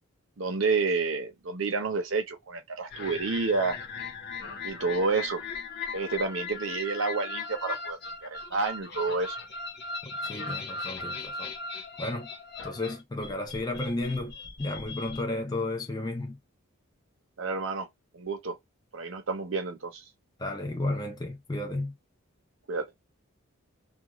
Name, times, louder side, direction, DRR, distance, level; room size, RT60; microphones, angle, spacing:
voice 1, 0.4-3.8 4.6-5.4 5.9-9.4 17.4-17.9 18.1-18.6 18.9-20.0 22.7-22.9, right 4 dB, 70° right, 0.7 m, -29 dB
sound 1, 2.9-15.2, left 4 dB, 55° left, 0.9 m, -38 dB
voice 2, 10.3-11.5 12.0-12.3 12.6-16.4 20.4-21.9, left 2 dB, 20° left, 0.5 m, -33 dB
2.4 x 2.3 x 2.9 m
head